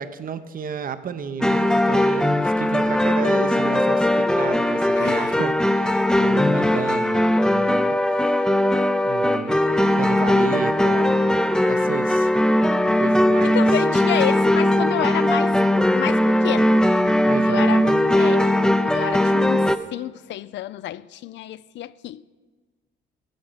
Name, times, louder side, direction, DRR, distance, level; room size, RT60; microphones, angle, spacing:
voice 1, 0.0-8.4 9.0-9.6 10.0-11.2 11.7-12.3 13.0-13.7 17.2-18.0, right 7 dB, 45° right, 0.7 m, -32 dB
sound 1, 1.4-19.8, left 1 dB, 5° left, 0.5 m, -19 dB
voice 2, 5.0-5.4 13.4-15.6 15.9-16.7 17.1-17.9 18.2-18.6 18.8-22.3, left 13 dB, 65° left, 0.4 m, -30 dB
10.5 x 7.7 x 5.6 m
cardioid pair, 90°, 20 cm